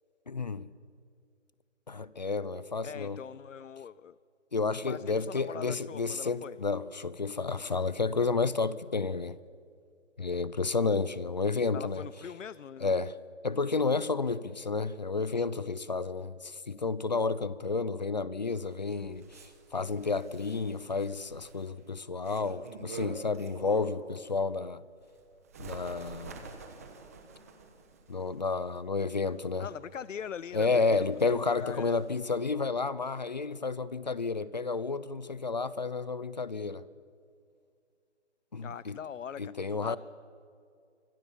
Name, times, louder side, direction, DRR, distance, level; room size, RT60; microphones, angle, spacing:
voice 1, 0.3-0.7 1.9-3.2 4.5-9.4 10.2-12.0 12.8-13.2 13.4-24.8 25.6-26.5 28.1-29.7 30.5-36.8 38.5-39.0 39.4-40.0, left 4 dB, 35° left, 0.7 m, -31 dB
voice 2, 2.8-4.2 4.8-6.6 11.7-12.9 29.6-32.0 38.6-40.0, left 8 dB, 90° left, 0.7 m, -42 dB
Bird, 18.7-24.1 24.5-32.2, right 4 dB, 15° right, 1.1 m, -48 dB
29.0 x 25.0 x 7.3 m
hypercardioid pair, 170°, 36 cm